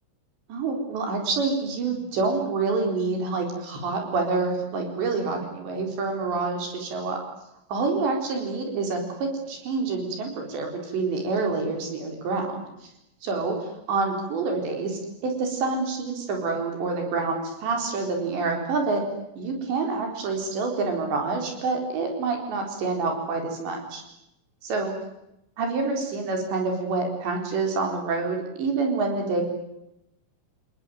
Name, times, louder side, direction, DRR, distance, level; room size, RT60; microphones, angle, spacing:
voice 1, 0.5-7.2 7.7-12.6 12.8-12.9 13.2-19.0 19.4-24.0 24.6-24.9 25.6-29.4, right 4 dB, 60° right, 3 dB, 6.3 m, -27 dB
29.0 x 20.0 x 9.3 m, 0.87 s
omnidirectional pair, 5.8 m